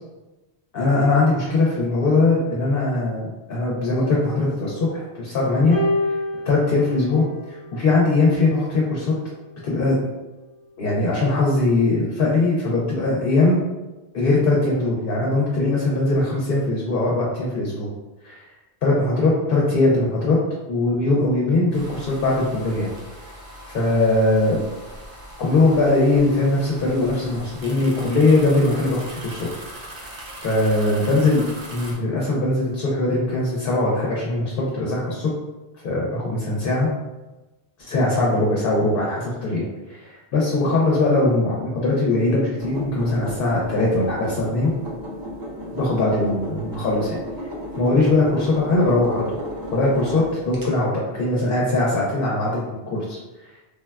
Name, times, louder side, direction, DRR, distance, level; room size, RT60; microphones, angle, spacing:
voice 1, 0.7-5.8 6.4-9.1 9.6-10.0 10.8-13.6 14.1-17.9 18.2-18.5 18.8-20.4 20.7-22.9 23.7-24.6 25.4-29.5 30.4-31.4 31.7-35.3 35.8-36.9 37.8-44.7 45.7-47.2 47.8-49.3 49.7-53.2, left 2 dB, 65° left, -4 dB, 0.7 m, -21 dB
sound 1, 5.7-8.2 9.2-9.4, left 1 dB, 25° left, 0.8 m, -28 dB
sound 2, 21.7-31.9, right 1 dB, 70° right, 0.9 m, -40 dB
sound 3, 42.6-50.7, equal, 35° right, 0.3 m, -33 dB
3.3 x 2.2 x 2.2 m, 1.1 s
omnidirectional pair, 1.1 m